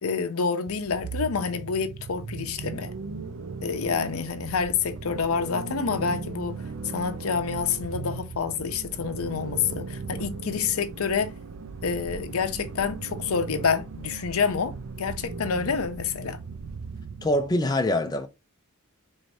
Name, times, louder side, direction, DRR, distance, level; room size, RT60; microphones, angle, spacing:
voice 1, 0.0-2.9 3.6-6.6 6.9-11.3 11.8-16.4, left 6 dB, 70° left, 0.6 m, -28 dB
sound 1, 0.7-17.5, right 4 dB, 65° right, 0.5 m, -37 dB
voice 2, 17.2-18.3, left 1 dB, 20° left, 0.5 m, -24 dB
4.6 x 3.2 x 2.7 m
head